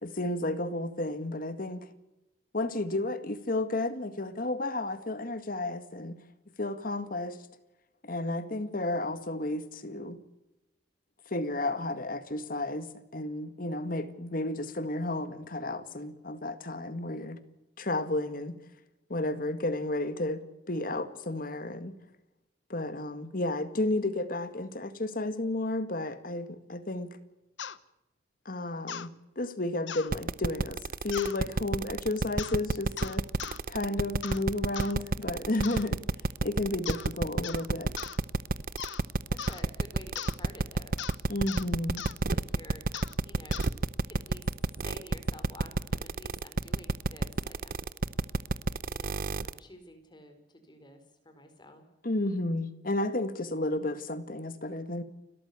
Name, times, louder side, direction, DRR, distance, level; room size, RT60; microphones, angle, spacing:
voice 1, 0.0-1.9 2.5-6.2 6.6-7.4 8.0-10.2 11.3-17.4 17.8-18.6 19.1-21.9 22.7-27.1 28.5-33.2 33.7-36.0 36.4-37.9 41.3-42.0 52.0-55.0, left 2 dB, 50° left, 1.9 m, -32 dB
sound 1, 27.6-27.8 28.9-29.1 29.9-30.1 31.1-31.4 32.4-32.6 33.0-33.6 34.2-34.4 34.8-34.9 35.6-35.9 36.9-37.1 37.4-37.7 38.0-38.2 38.8-39.0 39.4-39.6 40.2-40.4 41.0-41.2 41.5-41.7 42.0-42.2 42.9-43.1 43.5-43.7, left 8 dB, 85° left, 1.0 m, -39 dB
sound 2, 30.1-49.6, right 3 dB, 50° right, 0.7 m, -29 dB
voice 2, 33.3-33.6 39.3-41.0 42.3-42.8 43.2-43.6 44.1-44.5 44.8-47.8 48.9-51.0 51.2-51.9, left 1 dB, 25° left, 4.5 m, -51 dB
29.5 x 13.5 x 8.3 m
head